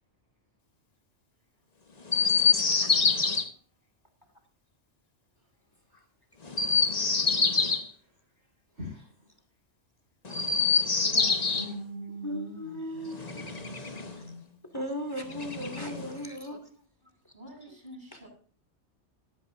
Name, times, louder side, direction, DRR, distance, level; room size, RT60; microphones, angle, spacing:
Chirp tweet, 2.1-3.4 6.4-7.9 10.2-11.7 13.1-14.2 15.3-16.2, left 5 dB, 35° left, 1.2 m, -26 dB
voice 1, 8.7-9.2 11.0-14.7, equal, 70° right, -4 dB, 5.8 m, -43 dB
voice 2, 12.2-13.4 13.8-13.9 14.7-16.6, equal, 20° left, 6 dB, 2.3 m, -36 dB
voice 3, 17.3-18.3, equal, 45° right, -8 dB, 7.8 m, -47 dB
18.0 x 12.5 x 2.6 m, 0.42 s
omnidirectional pair, 1.2 m